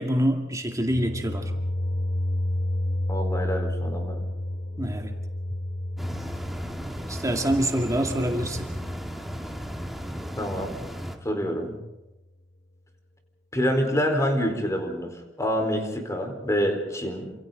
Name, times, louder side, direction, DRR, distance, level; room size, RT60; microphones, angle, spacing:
voice 1, 0.0-1.5 4.8-5.2 7.1-8.8, equal, 20° right, 3 dB, 2.1 m, -26 dB
sound 1, 0.7-9.6, left 1 dB, 65° left, 2.8 m, -31 dB
voice 2, 3.1-4.2 10.4-10.7 11.2-11.8 13.5-17.3, equal, 20° left, 4 dB, 4.3 m, -27 dB
sound 2, 6.0-11.2, equal, ahead, 2.1 m, -35 dB
29.0 x 27.0 x 4.0 m, 1.0 s
head